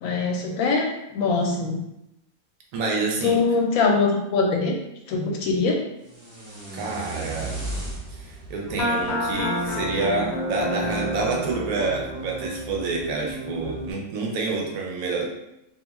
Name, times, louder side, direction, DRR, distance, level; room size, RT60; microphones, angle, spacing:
voice 1, 0.0-1.8 3.2-4.8 5.1-5.8, left 4 dB, 85° left, 1 dB, 1.0 m, -22 dB
voice 2, 2.7-3.4 6.7-7.6 8.1-15.3, right 3 dB, 85° right, -1 dB, 1.0 m, -28 dB
sound 1, 6.0-10.1, right 2 dB, 30° right, 0.8 m, -36 dB
sound 2, 8.7-13.9, equal, 50° left, 0.7 m, -29 dB
2.6 x 2.2 x 3.0 m, 0.85 s
omnidirectional pair, 1.4 m